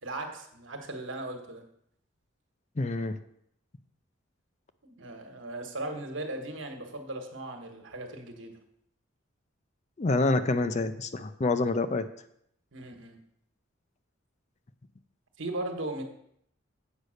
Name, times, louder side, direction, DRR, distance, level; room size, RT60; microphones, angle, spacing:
voice 1, 0.0-1.6 4.8-8.6 12.7-13.2 15.4-16.0, right 2 dB, 70° right, 4 dB, 1.4 m, -37 dB
voice 2, 2.8-3.2 10.0-12.0, left 2 dB, 35° left, 11 dB, 0.5 m, -27 dB
8.1 x 5.4 x 6.4 m, 0.71 s
head